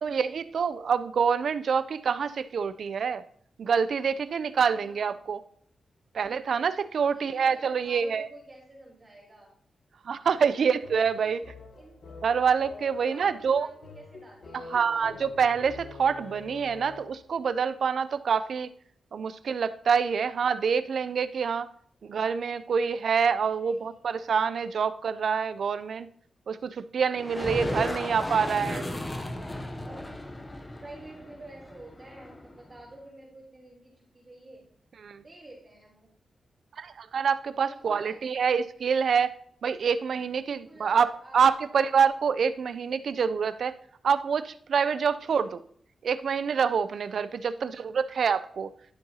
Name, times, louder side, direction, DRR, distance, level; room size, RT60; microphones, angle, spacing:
voice 1, 0.0-3.2 3.6-5.4 6.1-8.3 10.0-11.4 12.2-13.7 14.5-18.7 19.1-21.7 22.0-26.1 26.5-28.9 35.0-35.2 36.8-39.3 39.6-43.7 44.0-45.6 46.0-48.7, right 6 dB, 65° right, 14 dB, 0.4 m, -26 dB
voice 2, 4.5-5.3 7.0-9.5 11.2-11.4 11.8-12.1 12.9-15.3 23.5-24.0 29.0-30.4 30.8-34.6 35.2-36.1 37.6-38.6 40.4-41.6 45.3-45.6 47.5-48.0, right 2 dB, 25° right, -6 dB, 3.6 m, -50 dB
sound 1, 10.8-17.3, left 4 dB, 65° left, 1.1 m, -46 dB
sound 2, 27.1-32.8, left 1 dB, 20° left, 0.7 m, -35 dB
11.0 x 6.7 x 2.8 m, 0.62 s
wide cardioid pair, 150°, 0 cm